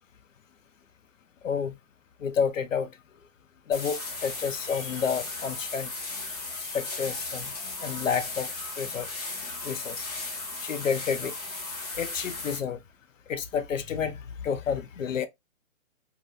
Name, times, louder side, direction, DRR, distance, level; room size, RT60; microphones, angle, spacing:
voice 1, 1.4-1.7 2.2-2.9 3.7-5.9 6.6-7.5 7.8-9.1 9.6-10.1 10.6-11.3 11.9-12.8 13.3-15.3, left 6 dB, 70° left, 0.6 m, -30 dB
sound 1, 3.7-12.6, left 3 dB, 30° left, 0.7 m, -36 dB
2.7 x 2.1 x 3.4 m
hypercardioid pair, 170°, 41 cm